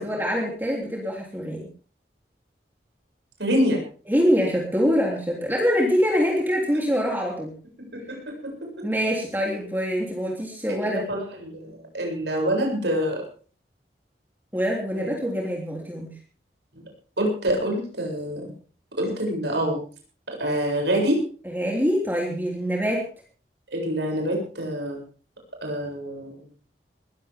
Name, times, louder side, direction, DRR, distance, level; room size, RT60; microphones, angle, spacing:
voice 1, 0.0-1.6 4.1-7.5 8.8-11.0 14.5-16.1 21.4-23.0, equal, 10° right, -2 dB, 3.3 m, -24 dB
voice 2, 3.4-3.8 7.8-8.9 10.7-13.2 14.9-15.2 17.2-18.5 19.0-19.8 20.3-21.3 23.7-25.0 25.6-26.4, equal, 80° right, 1 dB, 7.6 m, -26 dB
20.5 x 15.0 x 3.7 m, 0.41 s
head